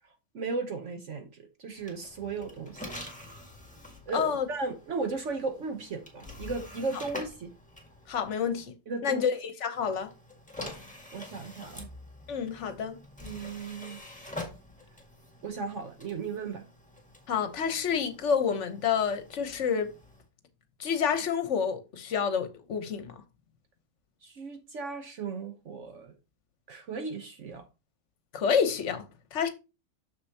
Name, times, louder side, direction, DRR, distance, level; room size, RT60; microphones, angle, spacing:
voice 1, 0.0-3.0 4.1-7.5 8.9-9.3 10.6-10.7 11.1-11.9 13.2-14.0 15.4-16.6 24.2-26.2 26.7-27.7 29.4-29.5, right 4 dB, 60° right, 1.1 m, -36 dB
sound 1, 1.8-8.7 9.7-20.3, left 2 dB, 5° left, 1.6 m, -46 dB
voice 2, 4.1-4.5 8.1-8.7 9.0-10.1 12.3-13.0 17.3-19.9 20.8-23.2 28.3-29.5, left 7 dB, 60° left, 1.2 m, -28 dB
6.7 x 6.6 x 2.8 m
omnidirectional pair, 1.5 m